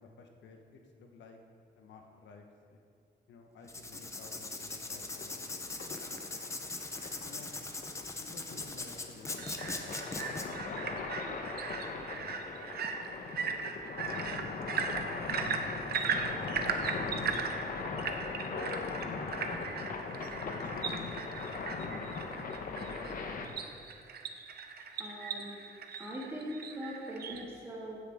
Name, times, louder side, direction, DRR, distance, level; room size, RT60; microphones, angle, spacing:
voice 1, 0.0-1.4 1.8-2.8 3.3-5.5 7.2-7.6 8.2-9.9 10.1-12.5 14.1-14.6 15.1-16.8 17.5-18.2 19.9-21.1 21.4-22.0 22.9-23.7, left 4 dB, 80° left, 3 dB, 1.2 m, -53 dB
Writing, 3.6-10.4, left 2 dB, 15° left, 0.7 m, -40 dB
sound 1, 5.1-23.5, left 4 dB, 50° left, 1.0 m, -40 dB
sound 2, 9.3-27.4, right 5 dB, 60° right, 0.8 m, -38 dB
voice 2, 25.0-25.5 26.0-28.0, equal, 15° right, -4 dB, 2.2 m, -41 dB
15.5 x 9.7 x 3.6 m, 2.4 s
wide cardioid pair, 170°, 19 cm